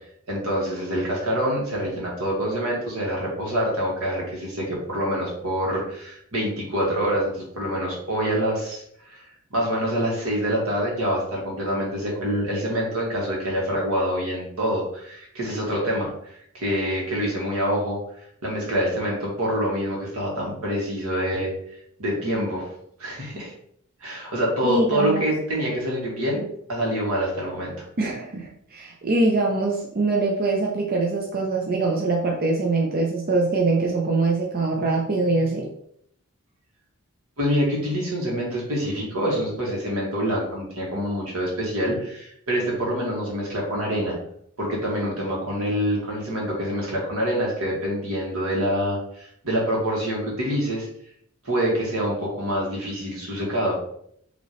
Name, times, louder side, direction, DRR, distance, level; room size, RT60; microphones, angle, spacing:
voice 1, 0.3-18.0 18.4-21.5 22.0-22.7 23.0-23.5 24.0-26.4 26.7-27.8 37.4-44.2 44.6-50.9 51.4-53.8, equal, 85° right, -3 dB, 1.8 m, -26 dB
voice 2, 24.6-25.2 28.0-35.7, right 3 dB, 45° right, -1 dB, 0.6 m, -23 dB
5.3 x 3.0 x 3.1 m, 0.68 s
head